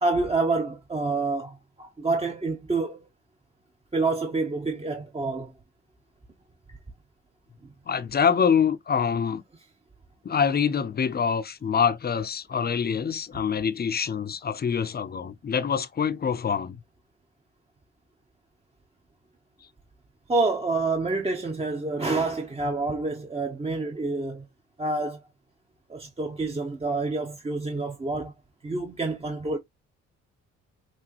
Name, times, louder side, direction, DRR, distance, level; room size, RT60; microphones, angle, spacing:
voice 1, 0.0-3.1 3.9-5.5 20.3-24.5 24.8-25.2 25.9-28.3 28.6-29.6, right 3 dB, 20° right, 0.9 m, -27 dB
voice 2, 7.9-9.4 10.2-16.8, left 7 dB, 30° left, 0.7 m, -25 dB
6.0 x 2.7 x 2.9 m
cardioid pair, 90°, 30 cm